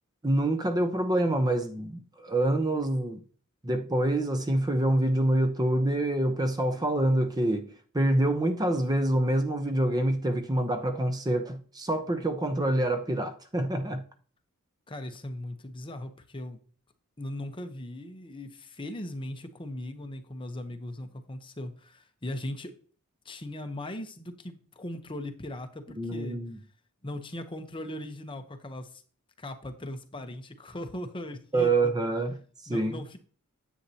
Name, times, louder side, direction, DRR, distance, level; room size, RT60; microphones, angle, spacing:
voice 1, 0.2-3.2 3.6-7.7 7.9-14.0 26.0-26.6 31.5-32.9, right 1 dB, 20° right, 0.8 m, -26 dB
voice 2, 14.9-16.6 17.2-22.8 23.2-26.4 27.0-29.0 29.4-31.9 32.7-33.2, left 1 dB, 25° left, 0.9 m, -39 dB
9.9 x 8.1 x 2.9 m
head